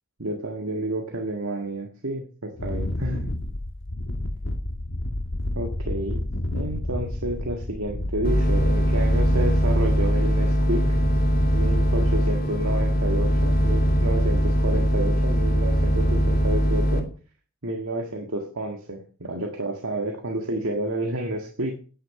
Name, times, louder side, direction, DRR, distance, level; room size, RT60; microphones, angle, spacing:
voice 1, 0.2-3.3 5.6-6.2 6.5-10.8 11.5-17.1 17.6-21.7, right 1 dB, 80° right, 3 dB, 1.8 m, -30 dB
Wind, 2.5-9.7, left 1 dB, 65° left, 1.4 m, -30 dB
sound 1, 8.2-17.0, equal, 45° left, 2.9 m, -21 dB
10.5 x 9.1 x 6.6 m, 0.40 s
head